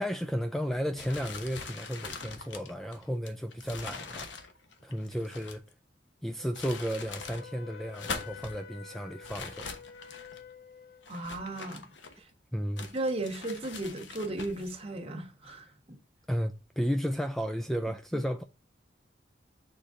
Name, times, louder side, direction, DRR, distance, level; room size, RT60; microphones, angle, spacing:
voice 1, 0.0-4.3 4.8-5.6 6.2-9.7 12.5-12.9 16.3-18.4, equal, ahead, 0.3 m, -33 dB
sound 1, 1.0-5.7 6.3-7.5 7.8-8.6 9.2-10.4 11.0-12.3 12.8-14.7, left 4 dB, 85° left, 1.0 m, -43 dB
Wind instrument woodwind instrument, 6.4-11.1, left 8 dB, 55° left, 0.6 m, -49 dB
voice 2, 11.1-11.9 12.2-12.3 12.9-16.0, right 2 dB, 35° right, 1.4 m, -35 dB
6.9 x 3.9 x 3.6 m
head